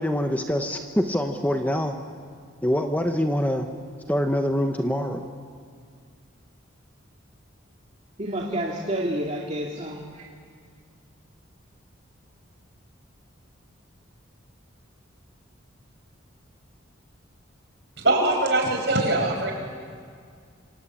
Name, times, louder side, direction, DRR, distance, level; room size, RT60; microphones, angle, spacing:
voice 1, 0.0-2.0 2.6-3.7 4.1-5.3, equal, 10° left, 5 dB, 1.0 m, -25 dB
voice 2, 8.2-10.2, right 1 dB, 35° right, -3 dB, 2.4 m, -29 dB
voice 3, 18.0-19.5, right 2 dB, 60° right, 2 dB, 5.6 m, -22 dB
27.0 x 24.5 x 8.6 m, 2.1 s
head